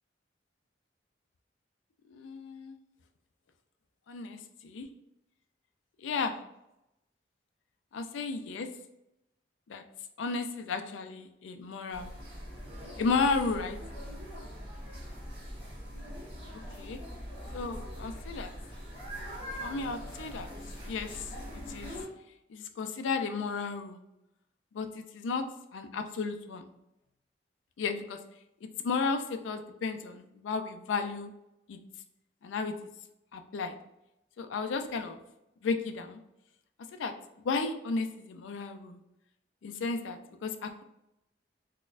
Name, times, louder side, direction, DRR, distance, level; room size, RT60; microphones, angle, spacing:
voice 1, 2.1-2.8 4.1-4.9 6.0-6.4 7.9-8.7 9.7-9.8 10.2-12.1 13.0-13.8 16.8-17.0 17.5-18.5 19.6-20.5 20.8-21.3 21.7-22.0 22.5-24.0 24.7-25.4 25.7-26.7 27.8-28.2 28.6-31.3 31.7-31.8 32.4-32.9 33.3-33.8 34.4-35.2 35.6-36.2 37.0-37.1 37.4-39.0 39.6-40.8, left 4 dB, 90° left, 7 dB, 0.3 m, -33 dB
sound 1, 11.9-22.0, equal, 25° right, 1.0 m, -42 dB
4.0 x 2.1 x 2.4 m, 0.88 s
head